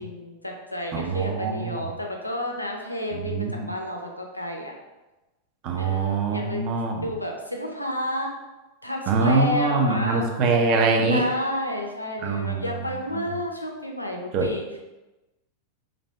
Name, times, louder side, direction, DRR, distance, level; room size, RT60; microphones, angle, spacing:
voice 1, 0.0-4.7 5.7-6.6 7.0-8.3 8.8-10.5 11.1-14.6, left 1 dB, 85° left, 1 dB, 0.5 m, -31 dB
voice 2, 0.9-1.8 3.1-3.7 5.6-7.1 9.1-11.2 12.2-13.2 14.3-14.5, right 3 dB, 40° right, 2 dB, 0.5 m, -24 dB
3.3 x 2.6 x 3.1 m, 1.1 s
figure-of-eight pair, 90°, 0 cm